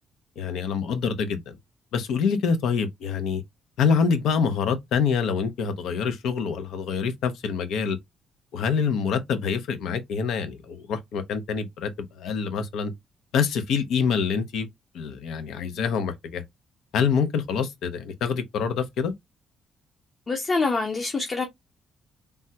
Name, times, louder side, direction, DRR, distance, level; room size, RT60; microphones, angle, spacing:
voice 1, 0.4-1.5 1.9-3.4 3.8-8.0 8.5-12.9 13.3-14.7 14.9-16.4 16.9-19.1, left 6 dB, 80° left, 0.6 m, -26 dB
voice 2, 20.3-21.5, left 3 dB, 35° left, 0.7 m, -25 dB
3.4 x 2.2 x 2.7 m
cardioid pair, 90°, 0 cm